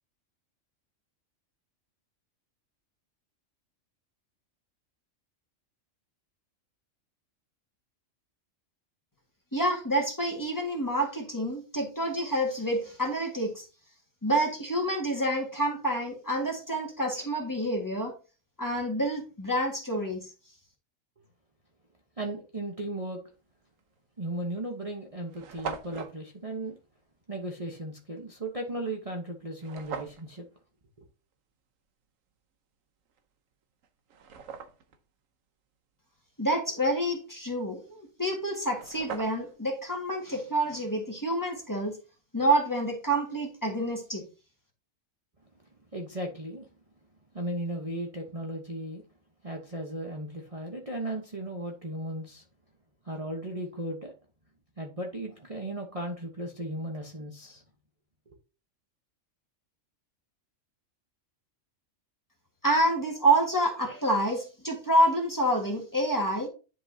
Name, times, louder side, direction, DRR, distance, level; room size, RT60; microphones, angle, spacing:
voice 1, 9.5-13.6 14.2-18.1 18.6-20.2 36.4-42.0 42.3-44.2 62.6-66.5, right 1 dB, 15° left, 1.8 m, -28 dB
voice 2, 22.2-23.2 24.2-26.8 27.3-30.4 45.6-45.7 45.9-46.7 47.3-49.0 49.4-52.4 53.0-54.1 54.8-57.6, right 1 dB, 30° right, 1.1 m, -36 dB
sound 1, 23.8-24.0 24.7-24.8 25.0-25.1 25.3-26.2 29.6-30.3 33.2-33.3 33.8-35.0 38.3-38.4 38.6-39.6, right 6 dB, 85° right, 1.2 m, -40 dB
10.5 x 5.3 x 2.8 m
omnidirectional pair, 1.3 m